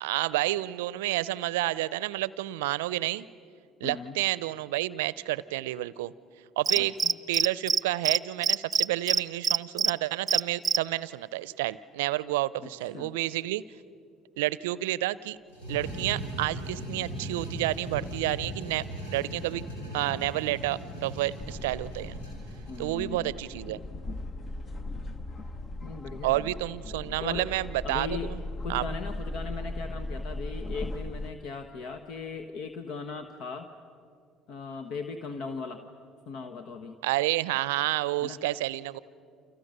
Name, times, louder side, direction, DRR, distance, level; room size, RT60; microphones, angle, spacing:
voice 1, 0.0-3.3 3.8-6.1 6.6-7.0 7.3-13.6 14.4-15.4 15.7-18.8 19.1-19.6 19.9-22.2 22.8-23.8 26.2-28.4 28.7-28.9 37.0-39.0, right 16 dB, 75° right, 20 dB, 0.6 m, -30 dB
voice 2, 3.8-4.2 6.8-7.1 12.6-13.1 22.7-23.4 25.8-26.5 27.0-27.5 27.8-28.3 28.6-33.7 34.5-35.8 36.3-37.0 38.2-38.4, left 5 dB, 60° left, 7 dB, 1.3 m, -38 dB
Cricket, 6.7-7.8 8.0-8.2 8.4-9.9 10.3-10.8, right 7 dB, 35° right, 0.7 m, -23 dB
sound 1, 15.5-22.9, right 1 dB, 85° left, 5.0 m, -38 dB
sound 2, 21.4-31.3, left 2 dB, 40° left, 1.2 m, -38 dB
29.5 x 28.0 x 6.7 m, 2.3 s
hypercardioid pair, 60°, 0 cm